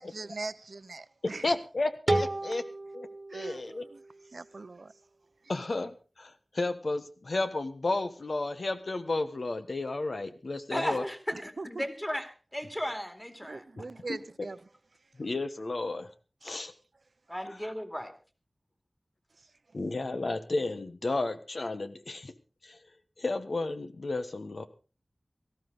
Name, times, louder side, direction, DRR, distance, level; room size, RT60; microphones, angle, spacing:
voice 1, 0.0-1.5 3.3-4.0 4.3-4.9 11.3-11.7 13.4-14.6 16.6-16.7, right 3 dB, 75° right, 0.7 m, -41 dB
voice 2, 1.2-2.6 3.3-3.8 5.5-5.9 6.2-11.0 14.1-14.5 15.2-16.1 16.4-16.7 17.5-17.6 19.7-22.3 22.6-22.8 23.2-24.7, left 2 dB, 75° left, 1.3 m, -32 dB
sound 1, 2.1-4.9, right 2 dB, 35° right, 1.4 m, -33 dB
voice 3, 10.7-11.4 11.8-12.2 12.5-13.6 17.3-18.1, equal, 15° left, 2.7 m, -34 dB
18.0 x 14.0 x 4.0 m
wide cardioid pair, 55°, 0 cm